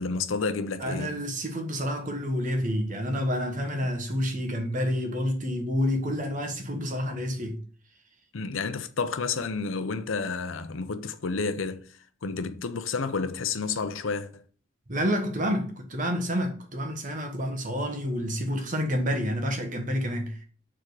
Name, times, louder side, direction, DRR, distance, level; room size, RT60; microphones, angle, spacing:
voice 1, 0.0-1.2 8.3-11.9 12.2-14.4, left 4 dB, 80° left, 0.6 m, -30 dB
voice 2, 0.8-7.6 12.3-12.4 14.9-20.4, equal, 40° right, 1.2 m, -29 dB
6.9 x 3.7 x 4.8 m
head